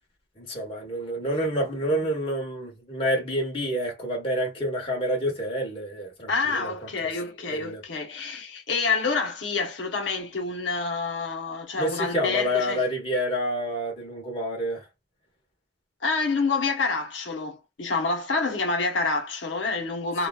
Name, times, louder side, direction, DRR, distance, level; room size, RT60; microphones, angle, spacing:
voice 1, 0.4-6.7 7.5-7.8 11.8-14.8, equal, 30° left, 1.1 m, -28 dB
voice 2, 6.3-12.8 16.0-20.3, left 4 dB, 80° left, 0.9 m, -27 dB
2.9 x 2.3 x 2.2 m
head